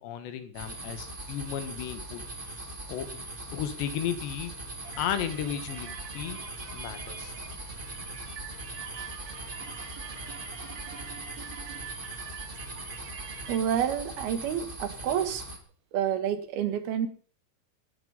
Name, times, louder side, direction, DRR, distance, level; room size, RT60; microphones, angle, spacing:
voice 1, 0.0-2.2 2.9-3.2 3.5-4.5 5.0-6.4 6.7-7.3, left 9 dB, 75° left, 10 dB, 3.6 m, -34 dB
sound 1, 0.5-15.6, right 1 dB, 20° right, 1.5 m, -41 dB
sound 2, 4.8-13.6, right 7 dB, 45° right, 2.8 m, -44 dB
voice 2, 13.5-15.4 15.9-17.1, right 9 dB, 65° right, 10 dB, 3.4 m, -28 dB
17.5 x 12.0 x 5.5 m, 0.42 s
omnidirectional pair, 5.2 m